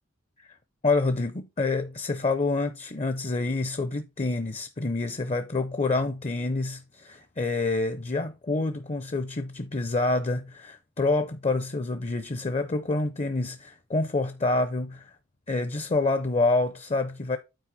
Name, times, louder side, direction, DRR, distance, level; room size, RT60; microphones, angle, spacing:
voice 1, 0.8-15.1 15.5-17.4, left 3 dB, 30° left, 0.6 m, -27 dB
9.0 x 4.5 x 4.0 m
head